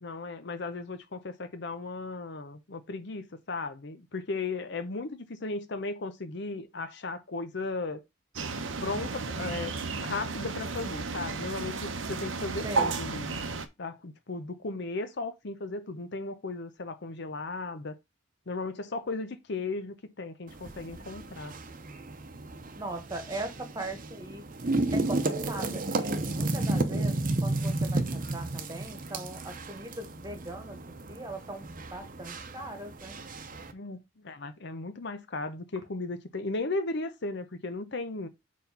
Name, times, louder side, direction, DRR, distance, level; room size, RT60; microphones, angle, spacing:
voice 1, 0.0-8.0 8.8-13.3 13.8-18.0 18.5-21.5 33.7-38.3, left 3 dB, 60° left, 0.8 m, -36 dB
sound 1, 8.4-13.7, right 4 dB, 75° right, 0.8 m, -33 dB
voice 2, 12.6-13.0 22.8-24.4 24.9-33.2, right 2 dB, 20° right, 1.4 m, -40 dB
sound 2, 20.5-33.7, right 2 dB, 45° right, 0.8 m, -33 dB
4.7 x 4.2 x 5.4 m
head